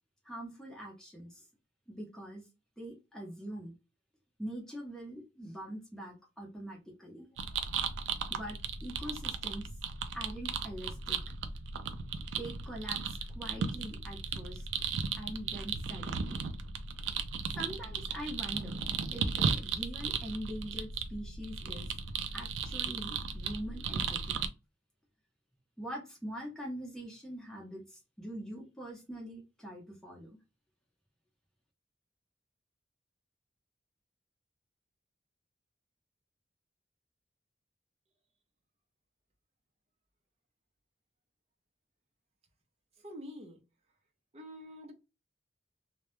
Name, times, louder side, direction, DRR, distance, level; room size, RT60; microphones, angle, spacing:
voice 1, 0.2-1.4 1.9-2.5 2.8-3.7 4.4-7.3 8.3-9.7 10.1-11.2 12.4-14.7 15.2-16.4 17.6-18.8 19.1-21.9 22.3-24.4 25.8-30.4, right 1 dB, 5° left, 0.7 m, -43 dB
sound 1, 7.4-24.5, right 5 dB, 90° right, 0.3 m, -36 dB
voice 2, 43.0-43.6 44.3-44.9, equal, 35° right, 0.5 m, -46 dB
2.2 x 2.0 x 2.9 m
head